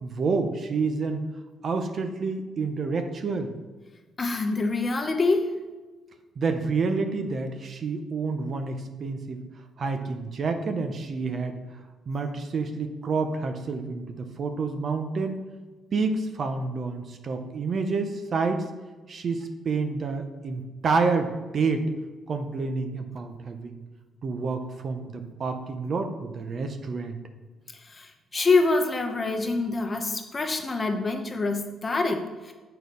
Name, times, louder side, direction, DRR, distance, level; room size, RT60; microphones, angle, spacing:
voice 1, 0.0-1.2 1.6-3.5 6.4-9.4 9.8-11.6 12.1-15.5 15.9-18.7 19.1-21.9 22.3-23.8 24.2-27.2, right 4 dB, 50° right, 6 dB, 0.8 m, -28 dB
voice 2, 4.2-5.5 27.8-32.5, left 3 dB, 30° left, 5 dB, 1.0 m, -25 dB
6.4 x 4.4 x 5.3 m, 1.3 s
cardioid pair, 90°, 0 cm